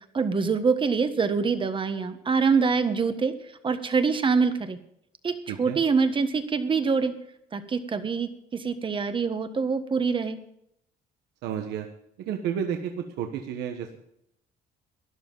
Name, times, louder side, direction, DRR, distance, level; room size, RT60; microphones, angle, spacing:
voice 1, 0.1-3.3 3.6-4.8 5.2-7.1 7.5-10.4, right 5 dB, 30° right, 9 dB, 1.4 m, -25 dB
voice 2, 5.5-5.8 11.4-11.9 12.2-14.0, right 8 dB, 85° right, 4 dB, 1.3 m, -31 dB
13.0 x 11.0 x 5.4 m, 0.76 s
cardioid pair, 110°, 17 cm